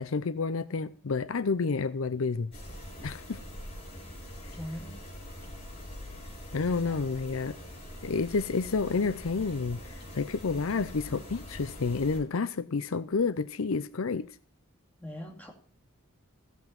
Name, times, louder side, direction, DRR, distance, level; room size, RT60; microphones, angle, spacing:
voice 1, 0.0-2.5 3.0-3.4 6.5-7.6 8.0-14.3, left 4 dB, 70° left, 0.6 m, -30 dB
sound 1, 2.5-12.2, left 1 dB, 25° left, 7.6 m, -44 dB
voice 2, 4.5-5.0 6.9-7.0 15.0-15.5, equal, 5° left, 2.9 m, -40 dB
15.5 x 8.3 x 5.9 m
head